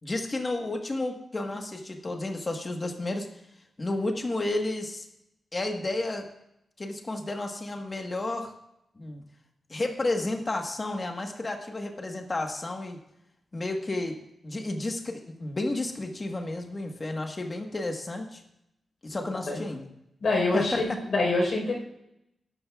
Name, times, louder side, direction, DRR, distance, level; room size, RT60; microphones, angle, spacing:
voice 1, 0.0-3.3 3.8-5.1 5.5-6.3 6.8-8.5 9.0-9.2 9.7-13.0 13.5-14.2 14.4-18.4 19.0-19.9 20.5-21.0, left 2 dB, 25° left, 3 dB, 1.3 m, -31 dB
voice 2, 20.2-21.7, left 2 dB, 50° left, -1 dB, 4.2 m, -25 dB
19.5 x 11.5 x 2.4 m, 0.82 s
wide cardioid pair, 170°, 0 cm